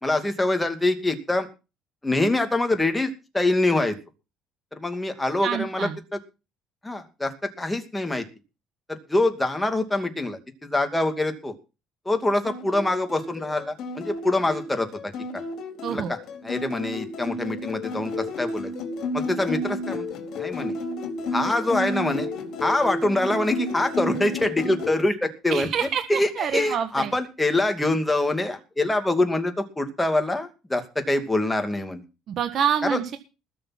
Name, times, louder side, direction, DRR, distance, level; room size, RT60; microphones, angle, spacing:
voice 1, 0.0-1.5 2.0-4.0 4.7-5.9 6.8-7.3 7.6-8.2 8.9-11.6 12.1-15.1 15.9-16.2 16.4-18.7 19.1-20.1 20.4-20.7 21.3-22.3 22.6-32.0 32.8-33.0, left 2 dB, 10° left, 6 dB, 2.5 m, -25 dB
voice 2, 5.4-6.0 15.8-16.1 25.5-27.1 32.3-33.2, right 8 dB, 50° right, 8 dB, 1.5 m, -27 dB
sound 1, 12.4-24.9, left 2 dB, 60° left, 4.3 m, -32 dB
20.5 x 7.0 x 5.9 m, 0.31 s
cardioid pair, 130°, 0 cm